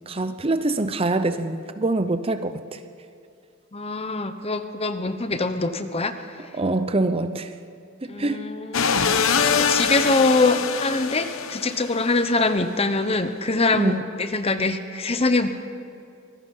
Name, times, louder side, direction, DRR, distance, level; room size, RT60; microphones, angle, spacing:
voice 1, 0.0-2.8 6.5-7.5 8.0-8.4 13.7-14.0, right 2 dB, 25° right, 10 dB, 0.6 m, -24 dB
voice 2, 3.7-6.1 8.1-15.5, left 3 dB, 30° left, 9 dB, 1.0 m, -24 dB
sound 1, 8.7-12.2, left 6 dB, 80° left, 1.0 m, -23 dB
24.5 x 19.0 x 5.6 m, 2.5 s
head